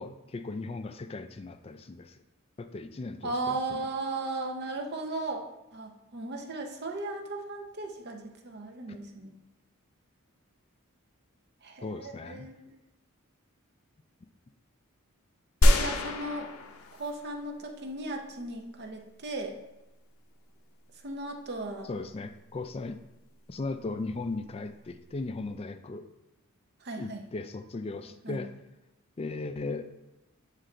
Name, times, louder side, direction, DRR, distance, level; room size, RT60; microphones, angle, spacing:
voice 1, 0.0-2.2 2.6-3.8 8.9-9.0 11.8-12.5 21.8-23.0 23.5-26.1 27.0-28.5 29.2-29.8, left 3 dB, 25° left, 9 dB, 0.3 m, -37 dB
voice 2, 3.2-5.5 5.7-9.4 11.6-12.8 15.6-16.5 16.9-19.5 21.0-21.9 26.8-27.2 28.2-28.4, right 2 dB, 50° right, 4 dB, 0.7 m, -36 dB
sound 1, 15.6-17.4 17.9-18.0, left 1 dB, 75° left, 0.6 m, -25 dB
7.5 x 3.3 x 3.8 m, 0.95 s
head